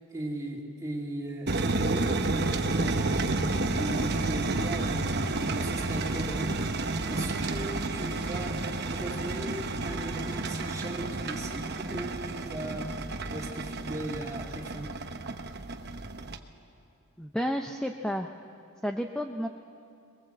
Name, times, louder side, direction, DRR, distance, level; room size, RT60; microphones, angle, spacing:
voice 1, 0.0-8.6 8.9-12.9 13.3-14.9, right 1 dB, 15° right, -1 dB, 2.5 m, -38 dB
sound 1, 1.5-16.4, right 2 dB, 50° right, 1.0 m, -31 dB
sound 2, 2.7-15.0, equal, 20° left, 4.0 m, -50 dB
voice 2, 17.2-18.3 18.8-19.5, equal, 5° left, 4 dB, 0.6 m, -31 dB
21.5 x 21.5 x 7.8 m, 2.5 s
head